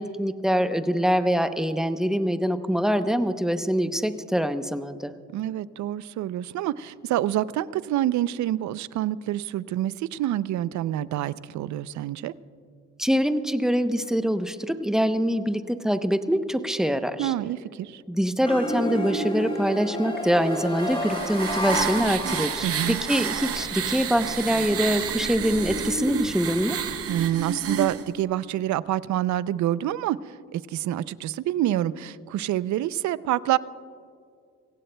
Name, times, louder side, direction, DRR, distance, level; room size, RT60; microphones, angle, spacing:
voice 1, 0.0-5.1 13.0-17.3 18.1-26.8, equal, ahead, 9 dB, 0.7 m, -24 dB
voice 2, 5.3-12.3 17.2-18.0 22.6-23.0 27.1-33.6, right 13 dB, 70° right, 17 dB, 0.5 m, -27 dB
sound 1, 18.5-23.1, left 1 dB, 20° left, 3.4 m, -30 dB
sound 2, 20.5-28.0, right 6 dB, 50° right, 0.9 m, -30 dB
24.5 x 16.0 x 2.2 m, 2.3 s
cardioid pair, 90°, 30 cm